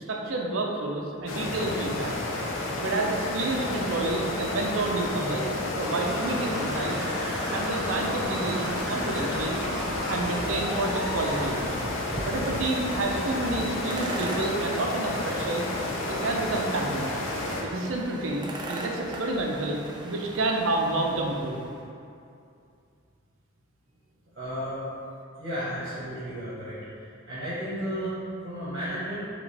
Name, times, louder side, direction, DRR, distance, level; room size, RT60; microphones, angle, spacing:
voice 1, 0.1-2.1 2.8-7.0 7.5-9.6 10.1-11.6 12.2-15.7 16.1-17.1 17.6-21.6, right 2 dB, 85° right, 0 dB, 0.6 m, -29 dB
sound 1, 1.3-17.6, left 2 dB, 85° left, 0.6 m, -31 dB
voice 2, 2.1-2.8 24.3-24.8 25.4-26.8 27.2-29.3, equal, 55° right, -11 dB, 1.2 m, -34 dB
sound 2, 5.5-12.1, equal, ahead, 1.1 m, -35 dB
sound 3, 7.9-21.8, right 1 dB, 25° right, 0.3 m, -40 dB
4.9 x 3.0 x 3.3 m, 2.5 s
head